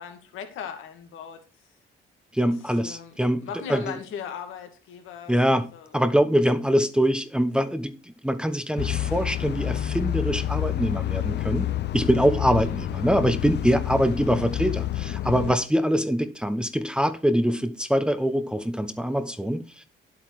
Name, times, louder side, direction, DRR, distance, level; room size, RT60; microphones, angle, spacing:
voice 1, 0.0-1.4 2.4-2.5 2.8-5.4 5.7-5.9 12.5-12.8, left 8 dB, 90° left, 2.3 m, -38 dB
voice 2, 2.3-4.0 5.3-5.7 5.9-11.7 11.9-19.9, equal, 5° right, 1.0 m, -24 dB
sound 1, 8.8-15.6, left 12 dB, 60° left, 0.6 m, -28 dB
10.5 x 8.5 x 4.7 m
cardioid pair, 90°, 20 cm